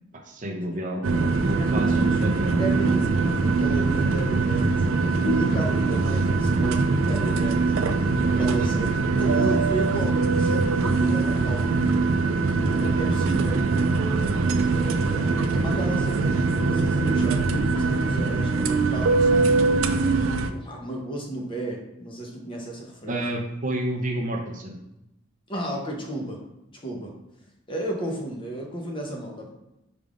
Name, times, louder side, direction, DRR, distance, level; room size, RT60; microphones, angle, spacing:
voice 1, 0.3-2.6 23.1-24.8, right 1 dB, 40° right, 1 dB, 0.6 m, -29 dB
sound 1, 1.0-20.5, right 3 dB, 90° right, 0.4 m, -22 dB
voice 2, 1.6-2.3 2.6-11.8 12.7-13.6 14.6-20.1 20.3-23.2 25.5-26.4 26.8-27.1 27.7-29.5, right 1 dB, 25° left, -1 dB, 0.7 m, -33 dB
5.0 x 3.4 x 2.4 m, 0.89 s
head